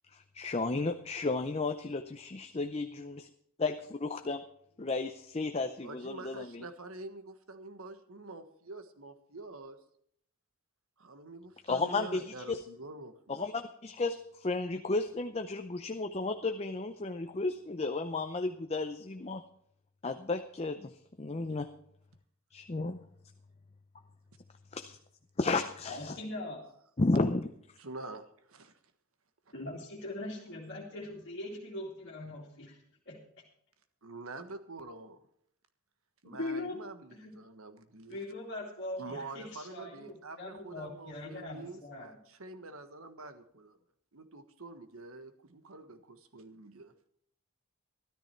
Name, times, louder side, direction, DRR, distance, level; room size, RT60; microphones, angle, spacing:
voice 1, 0.1-2.8 3.6-4.4 4.8-6.6 11.7-12.6 13.3-19.4 20.0-21.7 22.5-23.0 24.7-25.0 25.4-26.2 27.0-27.5, left 3 dB, 30° left, 7 dB, 0.6 m, -33 dB
voice 2, 5.8-9.8 11.0-13.5 27.8-28.7 34.0-35.2 36.2-38.2 39.0-43.8 44.1-46.9, right 2 dB, 75° right, 9 dB, 1.4 m, -46 dB
voice 3, 25.9-26.6 29.5-32.8 33.1-33.3 36.2-36.8 37.1-37.4 38.1-42.1, left 1 dB, 55° left, -4 dB, 2.4 m, -41 dB
13.5 x 13.0 x 4.5 m, 0.68 s
head